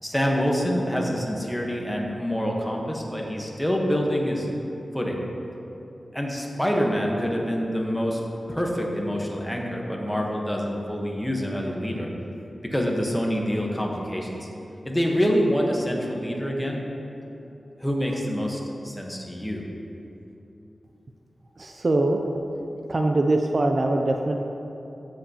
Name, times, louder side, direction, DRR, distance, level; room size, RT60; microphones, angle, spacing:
voice 1, 0.0-4.5 4.9-5.2 6.1-8.2 8.5-12.1 12.6-14.5 14.8-16.8 17.8-19.6, equal, 5° left, -1 dB, 1.2 m, -26 dB
voice 2, 21.6-22.2 22.9-24.4, right 2 dB, 40° right, 3 dB, 0.5 m, -22 dB
14.5 x 7.8 x 2.9 m, 2.9 s
wide cardioid pair, 130°, 0 cm